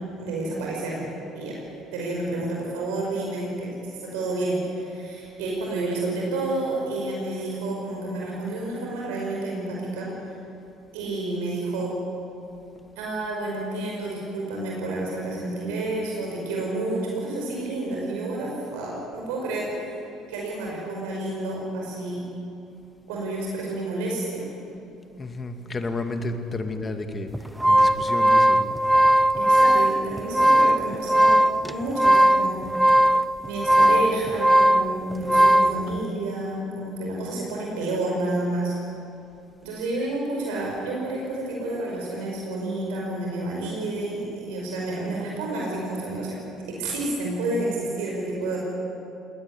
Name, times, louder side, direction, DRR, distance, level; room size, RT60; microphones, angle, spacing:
voice 1, 0.2-1.1 1.3-1.6 1.9-3.7 4.0-10.1 10.9-11.9 13.0-20.0 20.3-22.2 23.1-24.5 29.3-31.4 31.6-32.6 33.4-38.8 39.6-46.4 46.7-48.6, right 2 dB, 75° right, -2 dB, 5.5 m, -30 dB
voice 2, 25.2-27.3 27.7-28.8 29.7-29.8, left 2 dB, 30° left, 7 dB, 2.3 m, -31 dB
sound 1, 27.3-35.8, right 1 dB, 5° right, 0.8 m, -18 dB
19.5 x 19.0 x 9.8 m, 2.7 s
hypercardioid pair, 65°, 0 cm